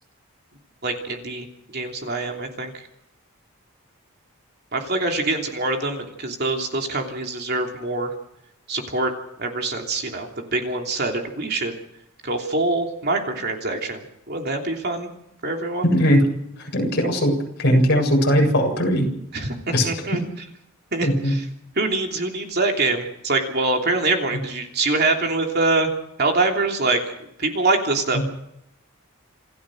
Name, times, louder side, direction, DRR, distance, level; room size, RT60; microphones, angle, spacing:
voice 1, 0.8-1.5 1.7-2.7 4.7-8.1 8.7-9.1 9.4-11.7 12.2-15.1 15.4-15.9 19.3-20.2 20.9-21.5 21.8-25.9 26.2-27.0 27.4-28.2, right 2 dB, 45° right, 2 dB, 3.2 m, -24 dB
voice 2, 15.8-16.2 16.7-19.1 19.7-19.9 21.0-21.3 28.1-28.2, equal, 50° left, 1 dB, 7.4 m, -19 dB
28.0 x 14.5 x 6.4 m, 0.77 s
head